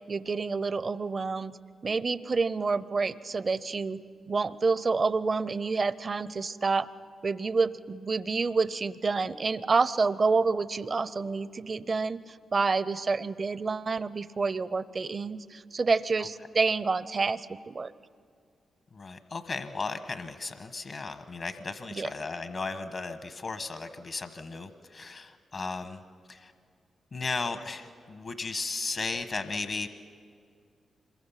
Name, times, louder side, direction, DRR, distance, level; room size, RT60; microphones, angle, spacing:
voice 1, 0.1-1.6 1.8-6.9 7.2-17.9 21.9-22.1, right 4 dB, 50° right, 16 dB, 0.7 m, -28 dB
voice 2, 18.9-26.0 26.3-26.5 27.1-29.9, left 3 dB, 60° left, 8 dB, 1.2 m, -35 dB
26.0 x 22.5 x 5.8 m, 2.2 s
supercardioid pair, 45°, 0 cm